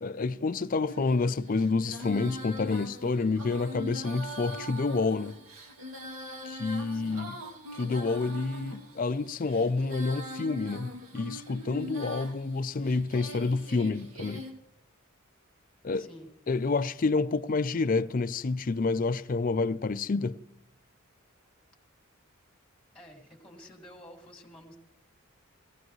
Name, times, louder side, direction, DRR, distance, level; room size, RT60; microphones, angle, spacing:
voice 1, 0.0-5.3 6.4-7.3 7.7-14.4 15.8-16.1 16.5-20.4, left 3 dB, 40° left, 0.4 m, -28 dB
Female singing, 0.9-14.5, equal, 85° right, 2.3 m, -42 dB
voice 2, 6.9-7.3 15.9-16.3 22.9-24.8, equal, 5° left, 2.1 m, -50 dB
19.5 x 15.5 x 3.1 m
head